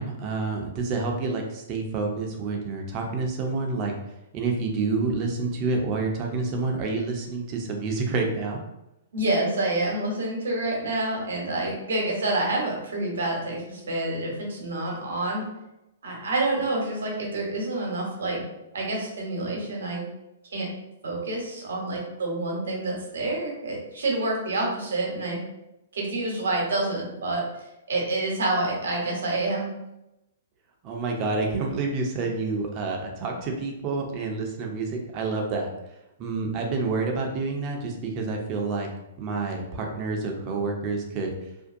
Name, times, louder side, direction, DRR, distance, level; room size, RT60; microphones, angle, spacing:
voice 1, 0.0-3.9 4.3-8.6 30.8-35.7 36.2-38.9 39.2-41.3, right 3 dB, 35° right, 1 dB, 0.6 m, -28 dB
voice 2, 9.1-15.5 16.0-18.4 18.7-20.0 20.5-20.7 21.0-25.4 25.9-27.4 27.9-29.7, right 2 dB, 70° right, -1 dB, 0.9 m, -28 dB
2.5 x 2.2 x 2.5 m, 0.91 s
hypercardioid pair, 120°, 0 cm